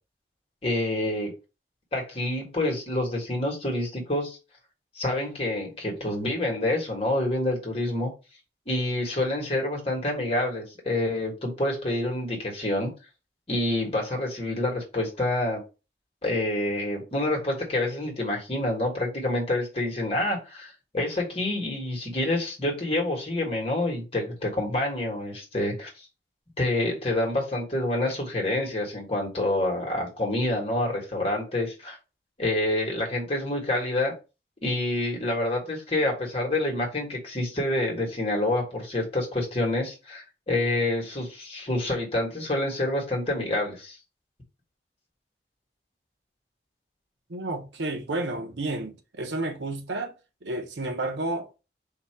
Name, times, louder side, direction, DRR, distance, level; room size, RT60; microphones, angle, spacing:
voice 1, 0.6-1.3 1.9-4.4 4.9-8.1 8.7-12.9 13.5-15.6 16.2-25.9 26.6-32.0 32.4-34.1 34.6-44.0, left 1 dB, 35° left, 1.5 m, -27 dB
voice 2, 47.3-50.1 50.4-51.5, right 2 dB, 90° right, 0.8 m, -31 dB
3.8 x 2.8 x 4.4 m
head